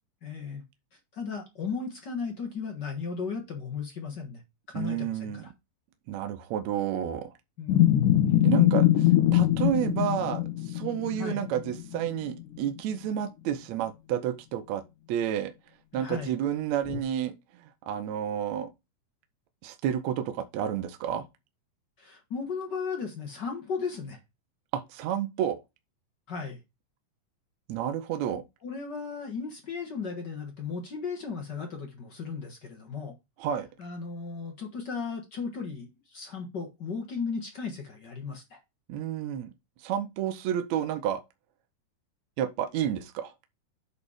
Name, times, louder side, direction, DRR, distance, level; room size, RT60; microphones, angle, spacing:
voice 1, 0.2-0.6 1.1-4.4 4.7-5.4 7.6-7.9 11.2-11.4 15.9-16.4 22.0-24.2 26.3-26.6 28.6-33.1 33.8-38.6, left 5 dB, 50° left, 1.3 m, -35 dB
voice 2, 4.7-5.4 6.1-7.3 8.4-14.8 15.1-15.5 15.9-18.7 19.6-21.2 24.7-25.6 27.7-28.4 33.4-33.7 38.9-39.5 39.8-41.2 42.4-43.3, right 10 dB, 75° right, 1.8 m, -30 dB
sound 1, 7.7-12.4 12.8-12.9 16.9-17.0, left 13 dB, 80° left, 2.4 m, -23 dB
8.2 x 4.2 x 4.9 m
omnidirectional pair, 3.7 m